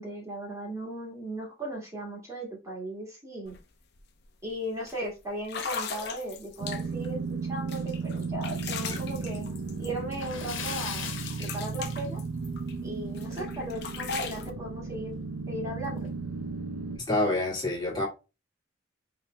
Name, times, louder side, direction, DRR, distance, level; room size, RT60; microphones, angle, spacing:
voice 1, 0.0-3.6 4.4-9.5 9.8-12.2 12.8-15.1 15.5-16.1, right 1 dB, 15° right, 1.8 m, -37 dB
sound 1, 3.4-3.6 3.9-4.2 4.9-5.0 5.4-7.1 7.7-10.4 10.6-12.7 13.1-14.5, left 6 dB, 60° left, 0.8 m, -39 dB
sound 2, 6.6-17.0, right 4 dB, 85° right, 0.6 m, -35 dB
Splash splatter, 10.1-12.4 12.8-12.9 13.4-13.5 14.9-15.0 15.3-15.4 16.0-16.3, left 7 dB, 75° left, 1.3 m, -39 dB
voice 2, 16.9-18.1, left 2 dB, 20° left, 1.8 m, -27 dB
5.3 x 4.1 x 2.2 m
head